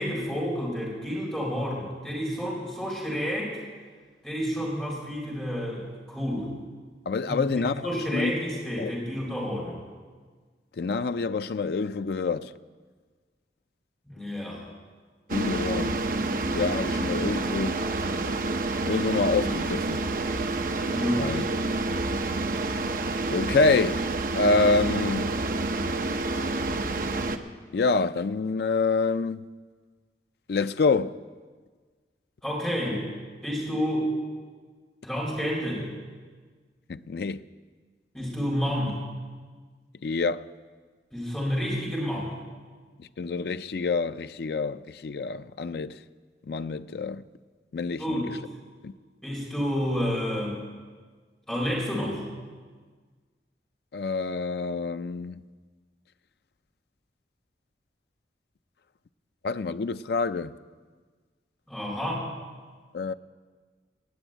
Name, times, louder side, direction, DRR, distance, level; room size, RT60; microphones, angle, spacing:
voice 1, 0.0-3.6 4.2-6.5 7.3-9.8 14.1-14.6 20.9-21.3 32.4-33.1 33.4-34.1 35.0-35.9 38.1-39.0 41.1-42.3 48.0-48.3 49.2-50.6 51.5-52.2 61.7-62.3, equal, 5° left, 4.2 m, -30 dB
voice 2, 7.1-8.3 8.8-9.0 10.8-12.5 15.3-16.0 16.5-17.8 18.8-20.1 21.2-21.4 22.2-22.3 23.3-24.1 24.3-25.3 27.7-29.5 30.5-31.2 36.9-37.4 40.0-40.5 43.0-46.0 46.4-47.2 47.7-48.4 48.8-48.9 53.9-55.4 59.4-60.6 62.9-63.1, left 4 dB, 65° left, 0.4 m, -27 dB
sound 1, 15.3-27.4, right 2 dB, 50° right, 0.8 m, -28 dB
18.5 x 7.1 x 8.9 m
head